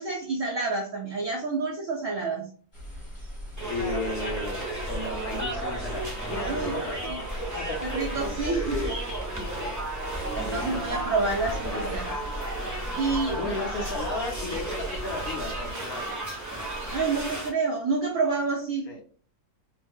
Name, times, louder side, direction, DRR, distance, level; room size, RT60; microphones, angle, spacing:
voice 1, 0.0-2.5 6.4-6.8 7.1-7.2 7.8-8.8 10.3-12.1 13.0-13.6 16.9-18.9, right 4 dB, 70° right, -2 dB, 0.7 m, -28 dB
sound 1, 2.7-15.7, equal, 20° left, 1.0 m, -39 dB
sound 2, 3.6-17.5, right 1 dB, 30° right, 0.3 m, -33 dB
voice 2, 3.7-7.2 7.5-8.0 8.7-8.9 10.4-11.1 11.6-12.0 13.2-16.2 18.9-19.0, left 3 dB, 65° left, 0 dB, 0.9 m, -35 dB
3.1 x 2.0 x 3.4 m, 0.43 s
omnidirectional pair, 2.0 m